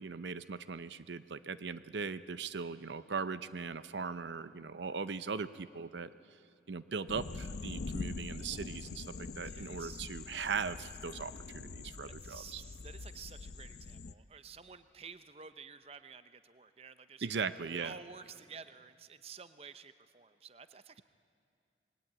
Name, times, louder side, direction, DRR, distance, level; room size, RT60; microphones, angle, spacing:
voice 1, 0.0-6.1 6.7-12.6 17.2-18.0, right 5 dB, 80° right, 14 dB, 0.6 m, -39 dB
sound 1, 7.1-14.1, left 3 dB, 75° left, 0.6 m, -44 dB
voice 2, 9.4-10.0 12.0-17.3 17.7-21.0, right 5 dB, 35° right, 12 dB, 0.6 m, -51 dB
27.0 x 21.0 x 8.7 m, 2.4 s
head